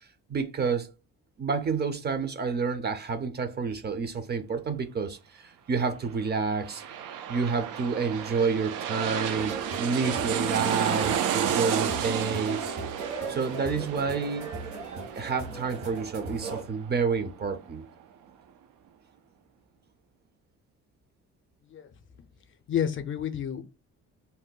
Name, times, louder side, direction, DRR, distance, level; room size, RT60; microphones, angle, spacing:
voice 1, 0.3-0.9 1.4-5.2 5.4-6.8 7.3-12.7 13.3-14.5 15.1-17.9, right 5 dB, 35° right, 0.5 m, -29 dB
sound 1, 6.3-17.6 18.0-18.1, right 9 dB, 85° right, 0.5 m, -32 dB
sound 2, 9.4-16.6, right 4 dB, 70° right, 1.2 m, -37 dB
voice 2, 22.7-23.6, left 9 dB, 40° left, 0.4 m, -29 dB
2.6 x 2.1 x 3.7 m
cardioid pair, 90°, 30 cm